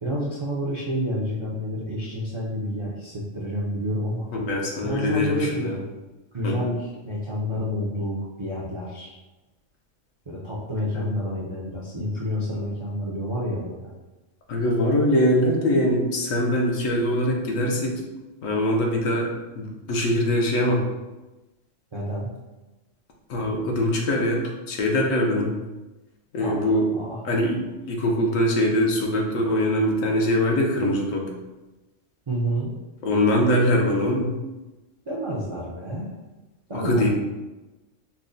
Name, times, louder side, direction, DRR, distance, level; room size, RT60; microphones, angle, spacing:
voice 1, 0.0-4.3 4.8-5.7 6.3-9.2 10.3-13.9 21.9-22.3 26.4-27.2 32.3-32.7 35.1-36.1 36.7-37.1, equal, 55° right, -6 dB, 0.3 m, -29 dB
voice 2, 4.3-5.8 6.4-6.6 10.9-11.1 14.5-18.0 18.4-19.3 19.6-20.8 23.3-25.5 26.3-26.9 27.2-31.3 33.0-34.3 36.7-37.1, left 1 dB, 80° left, 0 dB, 1.1 m, -22 dB
5.5 x 2.1 x 2.6 m, 1.1 s
omnidirectional pair, 1.3 m